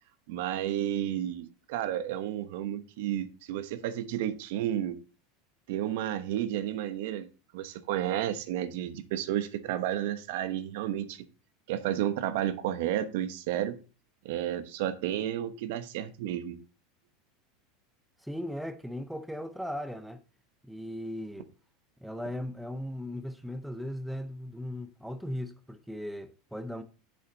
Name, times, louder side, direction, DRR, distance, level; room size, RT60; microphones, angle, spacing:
voice 1, 0.3-5.0 5.7-7.3 7.5-11.2 11.7-13.8 14.2-16.6, right 11 dB, 70° right, 1.0 m, -32 dB
voice 2, 18.2-20.2 20.6-21.5 22.0-26.8, equal, ahead, 0.6 m, -37 dB
7.7 x 7.1 x 3.9 m
supercardioid pair, 155°, 0 cm